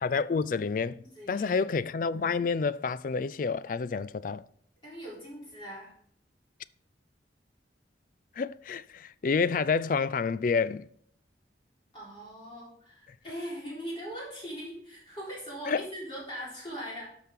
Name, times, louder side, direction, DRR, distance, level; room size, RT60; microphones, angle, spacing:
voice 1, 0.0-4.4 8.4-10.9 15.7-15.8, left 5 dB, 50° left, 0.4 m, -29 dB
voice 2, 1.1-1.7 4.8-5.9 11.9-17.0, equal, 30° left, 4.0 m, -40 dB
12.0 x 5.9 x 3.7 m
head